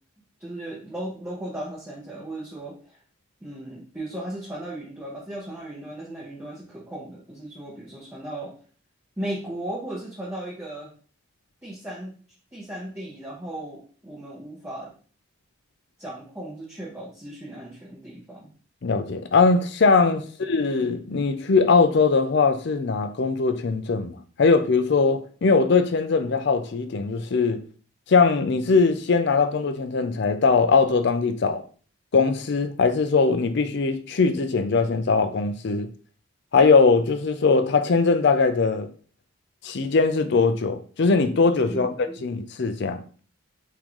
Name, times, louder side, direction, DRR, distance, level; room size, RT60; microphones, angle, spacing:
voice 1, 0.4-3.0 3.4-8.5 9.2-10.9 11.6-12.2 12.5-14.9 16.0-18.5 20.1-20.2 41.6-42.2, right 1 dB, 10° right, 0.8 m, -36 dB
voice 2, 18.8-27.6 28.1-31.6 32.1-35.9 36.5-38.9 39.6-41.9 42.2-43.0, left 4 dB, 55° left, 0.4 m, -21 dB
3.7 x 3.6 x 3.0 m
head